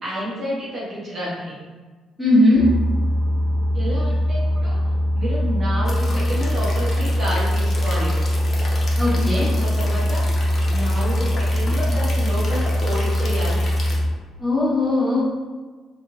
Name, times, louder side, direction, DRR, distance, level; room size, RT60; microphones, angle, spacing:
voice 1, 0.0-1.6 3.7-4.8 5.1-8.1 9.2-10.2 10.7-13.6, equal, 45° right, -7 dB, 0.9 m, -29 dB
voice 2, 2.2-2.7 9.0-9.5 14.4-15.4, left 2 dB, ahead, -7 dB, 1.1 m, -18 dB
Boat Water vehicle, 2.6-14.1, equal, 20° left, 1.0 m, -21 dB
sound 1, 5.8-14.0, left 2 dB, 40° left, 0.6 m, -35 dB
2.8 x 2.3 x 2.5 m, 1.4 s
figure-of-eight pair, 45°, 0 cm